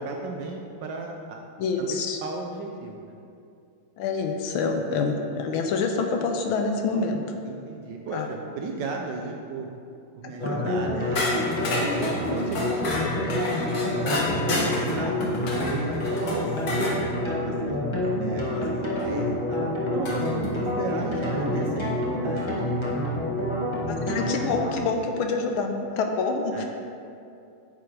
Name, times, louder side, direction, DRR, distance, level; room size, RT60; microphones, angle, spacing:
voice 1, 0.0-1.4 1.8-3.2 7.4-9.7 10.2-12.9 13.2-17.7 18.2-19.6 19.9-22.8 26.5-26.6, right 3 dB, 70° right, 1 dB, 1.1 m, -35 dB
voice 2, 1.6-2.2 4.0-7.2 8.1-8.3 10.2-10.5 23.9-26.6, left 4 dB, 75° left, 4 dB, 1.4 m, -27 dB
sound 1, 10.4-24.7, left 1 dB, 20° left, 0.9 m, -27 dB
sound 2, 11.2-17.0 19.0-19.1 20.1-20.5, left 2 dB, 50° left, 1.4 m, -30 dB
9.7 x 6.9 x 3.3 m, 2.5 s
omnidirectional pair, 2.4 m